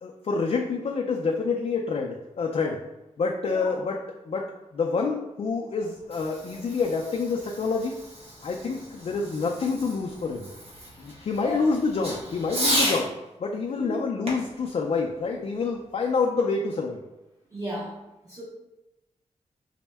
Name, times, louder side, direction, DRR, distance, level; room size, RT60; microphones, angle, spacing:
voice 1, 0.0-2.8 3.2-4.0 4.3-4.5 4.7-8.0 8.4-10.5 11.0-13.1 13.4-17.0, left 4 dB, 50° left, 0 dB, 0.4 m, -27 dB
voice 2, 3.5-3.8 6.5-6.6 11.1-11.7 13.8-14.0 17.5-18.0 18.2-18.4, equal, 25° right, -6 dB, 0.8 m, -35 dB
Fireworks, 5.8-13.1 14.2-15.9, equal, 50° right, 0.9 m, -34 dB
4.2 x 2.1 x 3.3 m, 0.99 s
wide cardioid pair, 105°, 13 cm